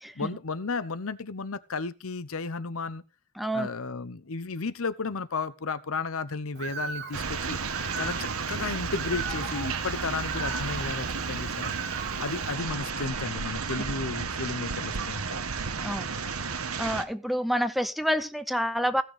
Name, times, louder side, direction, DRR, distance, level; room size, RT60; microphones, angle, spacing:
voice 1, 0.1-3.0 3.5-7.6 8.0-11.7 12.2-15.5, left 4 dB, 70° left, 0.8 m, -33 dB
voice 2, 3.4-3.7 15.8-16.1 16.8-19.0, equal, ahead, 0.7 m, -28 dB
Bird, 6.5-12.5, right 6 dB, 50° right, 1.1 m, -39 dB
sound 1, 7.1-17.0, right 5 dB, 75° right, 1.3 m, -32 dB
sound 2, 9.2-11.0 12.3-13.3, left 8 dB, 30° left, 2.1 m, -46 dB
16.0 x 6.4 x 5.0 m
head